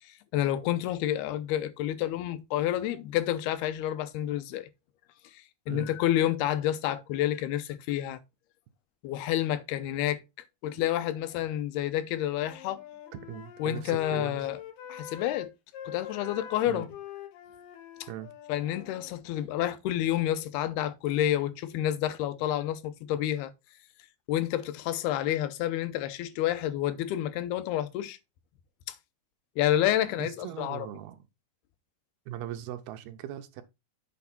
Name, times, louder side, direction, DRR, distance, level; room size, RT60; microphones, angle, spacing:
voice 1, 0.0-4.7 5.3-8.2 9.0-10.2 10.6-12.8 13.6-14.6 14.9-15.5 15.9-16.9 18.5-23.5 24.3-28.2 28.9-29.0 29.6-30.9, left 12 dB, 90° left, 2.7 m, -29 dB
Wind instrument woodwind instrument, 12.3-19.1, left 10 dB, 70° left, 2.6 m, -44 dB
voice 2, 13.3-14.4 16.7-16.9 18.1-18.3 30.2-31.2 32.3-33.6, right 11 dB, 85° right, 2.8 m, -39 dB
8.4 x 3.5 x 5.9 m
omnidirectional pair, 4.4 m